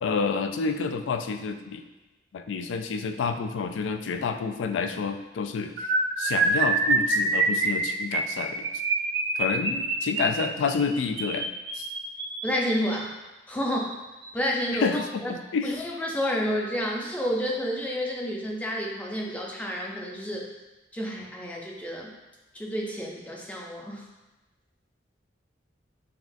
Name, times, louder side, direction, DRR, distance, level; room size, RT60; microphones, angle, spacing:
voice 1, 0.0-1.8 2.3-5.9 6.2-8.7 9.4-11.5 11.7-11.9 14.8-15.7, left 5 dB, 80° left, 6 dB, 0.3 m, -29 dB
sound 1, 5.8-12.9 13.7-13.9 14.2-14.4 14.7-14.9, right 3 dB, 60° right, 0.5 m, -26 dB
voice 2, 12.4-13.1 13.5-13.9 14.3-15.3 15.6-20.4 20.9-22.1 22.5-24.1, equal, 10° left, -2 dB, 0.5 m, -30 dB
5.8 x 2.4 x 2.6 m, 1.1 s
head